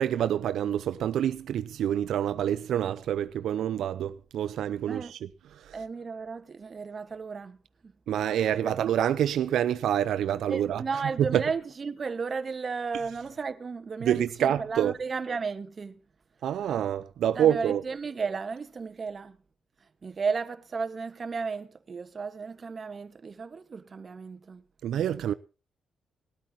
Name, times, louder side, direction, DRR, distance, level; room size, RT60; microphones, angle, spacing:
voice 1, 0.0-5.0 8.1-10.8 11.2-11.4 14.0-14.9 16.4-17.8 24.8-25.3, right 10 dB, 75° right, 0.7 m, -27 dB
voice 2, 5.7-7.6 7.8-7.9 8.2-8.4 8.6-8.7 10.5-16.0 17.3-19.4 20.0-24.6, right 5 dB, 30° right, 1.4 m, -34 dB
20.0 x 13.0 x 2.9 m
cardioid pair, 155°, 0 cm